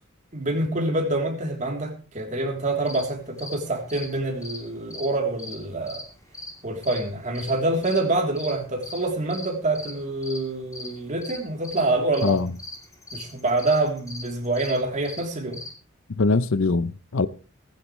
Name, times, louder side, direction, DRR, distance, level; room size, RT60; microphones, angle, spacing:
voice 1, 0.3-6.0 6.6-12.4 13.1-15.6, right 2 dB, 35° right, 3.3 m, -26 dB
sound 1, 2.6-15.7, left 2 dB, 15° left, 3.1 m, -41 dB
voice 2, 16.1-17.3, left 3 dB, 70° left, 0.7 m, -22 dB
15.5 x 15.0 x 3.2 m
head